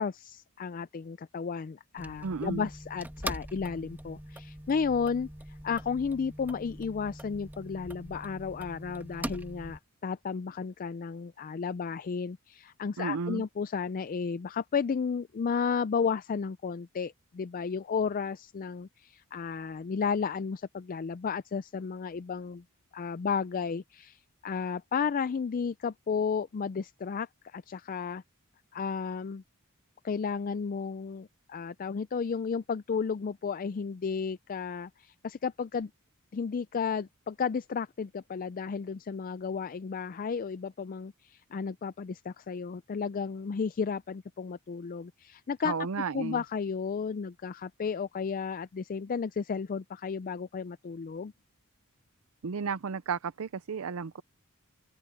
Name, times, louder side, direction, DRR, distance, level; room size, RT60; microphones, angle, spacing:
voice 1, 0.0-22.6 22.9-28.2 28.7-29.4 30.0-35.9 36.3-45.7 46.1-51.3, left 6 dB, 40° left, 0.4 m, -33 dB
sound 1, 2.0-9.8, right 1 dB, 10° right, 2.0 m, -42 dB
voice 2, 2.2-2.7 13.0-13.4 45.6-46.4 52.4-54.2, right 5 dB, 65° right, 0.5 m, -33 dB
open air
head